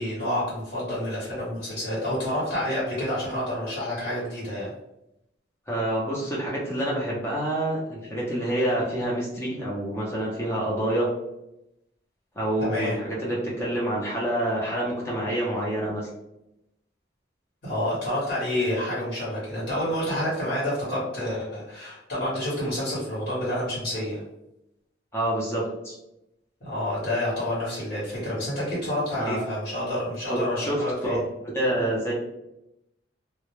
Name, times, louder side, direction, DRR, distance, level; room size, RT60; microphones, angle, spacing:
voice 1, 0.0-4.7 12.6-13.0 17.6-24.2 26.6-31.2, left 1 dB, 55° left, -8 dB, 1.1 m, -28 dB
voice 2, 5.7-11.1 12.4-16.1 25.1-25.9 29.2-29.4 30.3-30.8 31.0-31.2 31.5-32.1, right 1 dB, 15° left, -5 dB, 0.5 m, -27 dB
2.1 x 2.1 x 3.0 m, 0.86 s
head